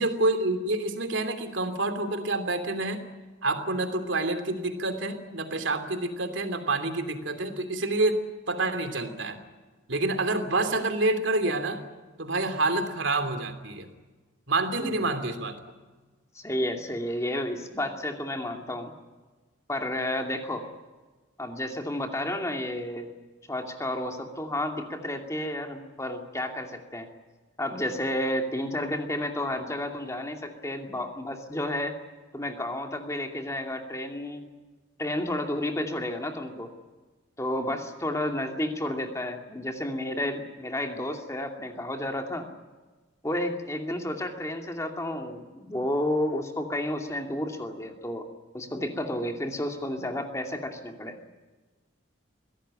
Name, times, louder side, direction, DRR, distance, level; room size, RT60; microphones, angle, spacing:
voice 1, 0.0-3.0 3.4-8.2 8.5-9.4 9.9-11.8 12.2-13.9 14.5-15.6, right 2 dB, 70° right, 8 dB, 2.9 m, -28 dB
voice 2, 14.8-15.1 16.3-18.9 19.7-20.7 21.4-23.1 23.5-27.1 27.6-31.9 32.3-34.5 35.0-36.7 37.4-42.5 43.2-48.3 48.5-51.2, left 1 dB, 15° left, 3 dB, 2.5 m, -31 dB
22.5 x 17.0 x 9.9 m, 1.3 s
head